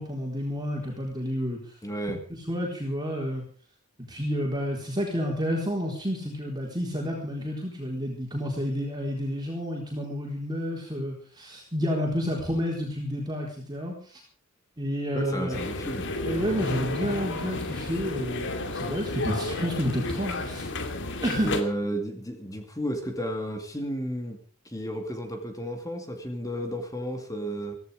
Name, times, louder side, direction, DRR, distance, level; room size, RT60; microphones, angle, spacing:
voice 1, 0.0-1.6 2.3-3.4 4.1-14.2 14.8-15.6 16.2-20.7 21.2-21.5, equal, 20° right, -1 dB, 4.0 m, -30 dB
voice 2, 1.8-2.2 15.1-16.1 21.4-24.4 24.6-27.7, right 1 dB, 15° left, 5 dB, 2.4 m, -32 dB
sound 1, 15.5-21.6, left 2 dB, 55° left, 2.5 m, -32 dB
16.5 x 16.0 x 5.1 m, 0.41 s
head